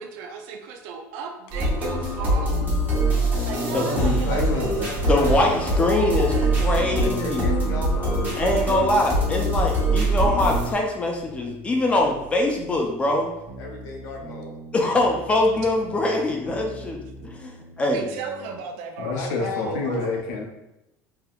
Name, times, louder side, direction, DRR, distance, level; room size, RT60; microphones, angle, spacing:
voice 1, 0.0-2.8 3.4-4.7 5.8-6.6 17.8-20.1, right 6 dB, 80° right, 4 dB, 0.4 m, -36 dB
sound 1, 1.5-10.7, right 1 dB, 25° right, 0.9 m, -23 dB
voice 2, 3.7-4.8 19.0-20.5, left 4 dB, 90° left, 2 dB, 0.6 m, -28 dB
voice 3, 4.3-5.3 6.9-9.3 13.6-14.5 19.1-20.0, left 2 dB, 55° left, 0 dB, 0.7 m, -34 dB
voice 4, 5.1-7.4 8.4-13.3 14.7-18.0, left 1 dB, 15° left, 1 dB, 0.4 m, -23 dB
sound 2, 8.9-18.6, right 1 dB, 55° right, 0.8 m, -43 dB
3.4 x 2.8 x 2.3 m, 0.92 s
cardioid pair, 150°, 7 cm